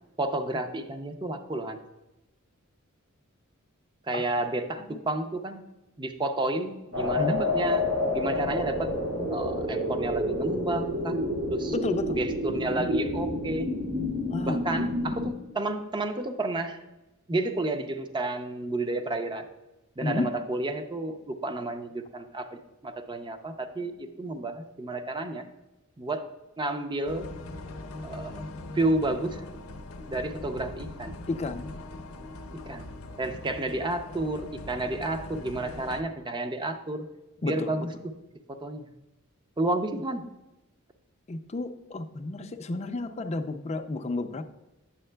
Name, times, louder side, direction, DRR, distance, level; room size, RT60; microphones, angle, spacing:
voice 1, 0.2-1.8 4.1-5.6 6.0-7.8 8.1-8.9 9.3-11.2 11.5-11.7 12.1-13.7 14.4-16.8 17.3-19.5 20.0-25.4 26.0-26.2 26.6-27.3 28.0-28.4 28.7-29.4 30.1-31.1 32.5-32.9 33.2-37.0 37.4-37.9 38.6-38.9 39.6-40.3, right 2 dB, 20° right, 8 dB, 0.5 m, -31 dB
sound 1, 6.9-15.3, left 1 dB, 90° right, 2.1 m, -29 dB
voice 2, 11.7-12.2 14.3-14.6 20.0-20.3 31.3-31.7 37.4-37.9 41.3-44.4, left 2 dB, 30° left, 8 dB, 0.4 m, -31 dB
sound 2, 27.1-36.0, left 2 dB, 90° left, 0.6 m, -41 dB
8.5 x 7.1 x 2.2 m, 0.97 s
head